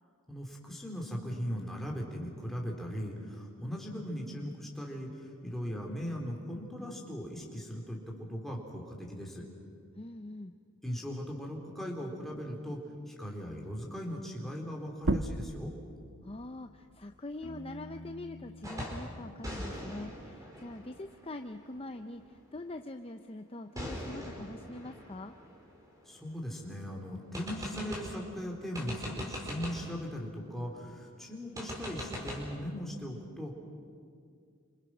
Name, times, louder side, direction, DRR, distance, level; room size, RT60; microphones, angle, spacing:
voice 1, 0.3-9.4 10.8-12.8 13.1-15.7 26.1-33.5, equal, ahead, -1 dB, 3.7 m, -39 dB
voice 2, 9.9-10.5 16.2-25.3, left 2 dB, 25° left, 7 dB, 0.6 m, -43 dB
sound 1, 15.0-20.2 20.6-22.4, right 2 dB, 55° right, 0.9 m, -39 dB
Piano, 17.4-21.1, left 1 dB, 70° left, 2.7 m, -51 dB
sound 2, 18.6-19.1 19.4-22.0 23.8-26.5 26.8-26.9 27.3-28.2 28.7-30.0 31.6-32.4, equal, 15° right, 4.7 m, -42 dB
29.5 x 26.5 x 6.2 m, 2.3 s
head